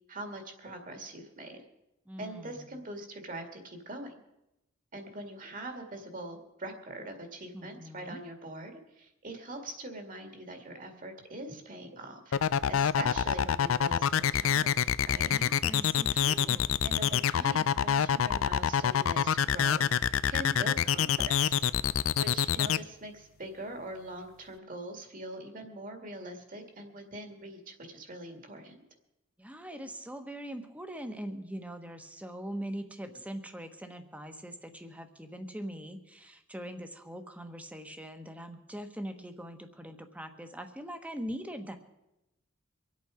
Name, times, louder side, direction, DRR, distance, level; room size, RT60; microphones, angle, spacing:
voice 1, 0.1-1.6 2.2-4.2 4.9-12.2 12.7-15.3 16.8-21.6 22.2-28.8, right 1 dB, 40° right, 5 dB, 2.1 m, -43 dB
voice 2, 2.1-2.7 7.5-8.2 15.2-16.8 29.4-41.8, equal, 5° right, 7 dB, 1.2 m, -42 dB
sound 1, 12.3-22.8, left 8 dB, 90° left, 0.4 m, -26 dB
24.5 x 8.5 x 5.0 m, 0.92 s
head